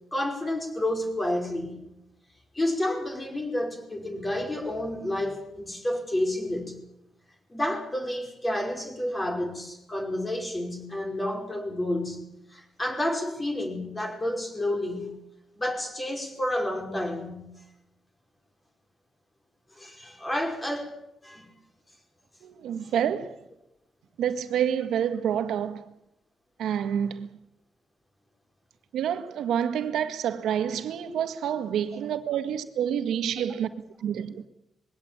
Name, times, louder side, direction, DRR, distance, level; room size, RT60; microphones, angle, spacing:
voice 1, 0.1-1.9 2.5-6.8 7.5-12.2 12.5-15.2 15.6-17.5 19.8-20.9 21.2-21.5, left 1 dB, 15° left, 5.1 m, -30 dB
voice 2, 22.4-23.4 24.2-25.8 26.6-27.3 28.9-33.7 34.0-34.4, right 9 dB, 80° right, 1.8 m, -28 dB
21.5 x 17.0 x 9.0 m
cardioid pair, 135°, 0 cm